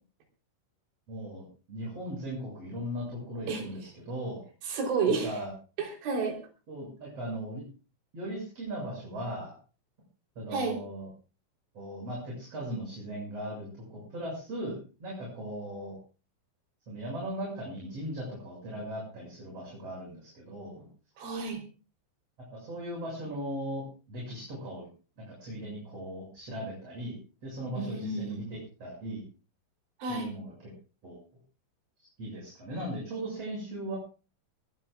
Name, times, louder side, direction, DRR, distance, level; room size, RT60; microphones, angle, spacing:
voice 1, 1.1-4.4 5.2-5.5 6.7-7.6 8.1-9.5 10.4-11.1 11.7-16.0 16.9-20.9 22.5-24.9 25.2-29.2 30.1-30.5 31.0-31.2 32.0-34.0, right 1 dB, 30° right, -2 dB, 7.6 m, -38 dB
voice 2, 4.7-5.3 5.8-6.4 10.5-10.8 21.2-21.6 27.8-28.4 30.0-30.3, right 4 dB, 70° right, 2 dB, 5.9 m, -30 dB
21.0 x 21.0 x 2.4 m, 0.36 s
omnidirectional pair, 5.6 m